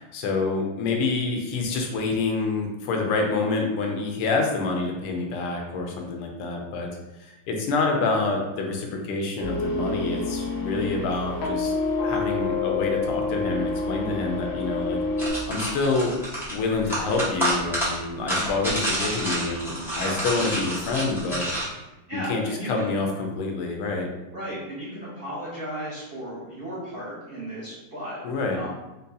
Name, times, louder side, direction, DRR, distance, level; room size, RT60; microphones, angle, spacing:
voice 1, 0.1-6.9 7.2-11.7 12.0-15.0 15.5-16.1 16.5-21.5 22.1-24.1 28.2-28.6, left 3 dB, 90° left, 2 dB, 1.6 m, -27 dB
sound 1, 9.4-15.3, left 3 dB, 70° left, 1.7 m, -28 dB
sound 2, 15.2-21.7, right 1 dB, ahead, 0.9 m, -29 dB
voice 2, 22.1-23.0 24.3-28.2 28.5-28.7, right 1 dB, 75° right, -9 dB, 0.5 m, -35 dB
5.2 x 2.2 x 2.6 m, 1.0 s
omnidirectional pair, 2.4 m